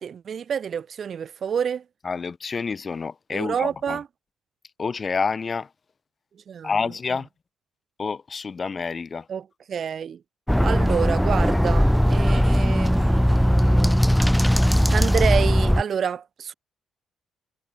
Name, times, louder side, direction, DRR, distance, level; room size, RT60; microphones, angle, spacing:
voice 1, 0.0-1.8 3.3-4.0 6.5-6.7 9.3-10.2 10.6-14.0 14.9-16.5, right 7 dB, 55° right, 1.1 m, -28 dB
voice 2, 2.0-4.0 4.8-5.7 6.6-7.3 8.0-9.3, left 5 dB, 35° left, 2.1 m, -28 dB
sound 1, 10.5-15.8, equal, ahead, 0.3 m, -19 dB
cardioid pair, 90°, 0 cm